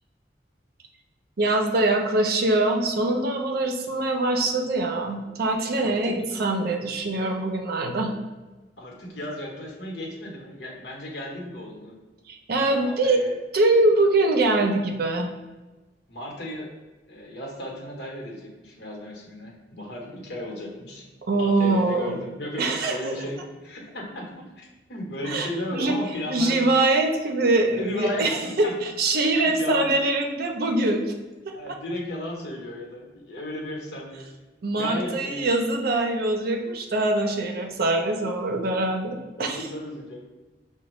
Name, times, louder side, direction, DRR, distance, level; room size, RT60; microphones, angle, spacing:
voice 1, 1.4-8.1 12.3-13.2 13.5-15.3 21.3-22.2 22.6-23.2 25.2-26.0 26.3-31.0 31.5-31.8 34.6-39.6, right 2 dB, 60° right, 3 dB, 0.5 m, -23 dB
voice 2, 5.8-6.1 8.8-11.9 12.8-13.3 16.1-16.7 17.1-21.0 21.4-26.6 27.8-28.3 28.6-28.7 29.5-29.9 31.5-34.2 34.8-35.5 37.4-37.5 38.5-38.6 39.4-40.2, left 1 dB, 70° left, -1 dB, 1.0 m, -35 dB
5.9 x 2.2 x 3.0 m, 1.2 s
head